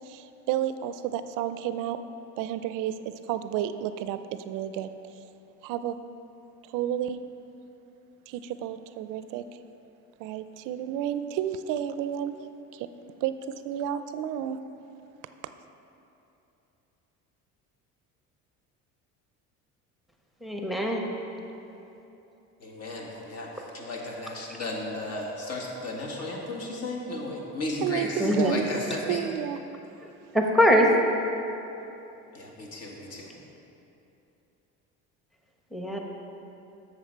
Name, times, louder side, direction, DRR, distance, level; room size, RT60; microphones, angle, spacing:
voice 1, 0.0-2.0 2.4-4.2 4.5-4.9 5.6-5.9 6.7-7.2 8.3-9.4 10.2-12.4 12.7-12.9 13.2-13.3 13.6-14.6 27.8-28.7 29.1-29.6, right 10 dB, 75° right, 11 dB, 0.5 m, -31 dB
voice 2, 20.4-21.1 28.2-28.5 30.3-30.9 35.7-36.0, equal, ahead, 0 dB, 0.9 m, -22 dB
voice 3, 22.6-29.2 32.3-33.3, left 2 dB, 50° left, -1 dB, 1.7 m, -35 dB
7.9 x 6.7 x 4.5 m, 3.0 s
supercardioid pair, 100°, 32 cm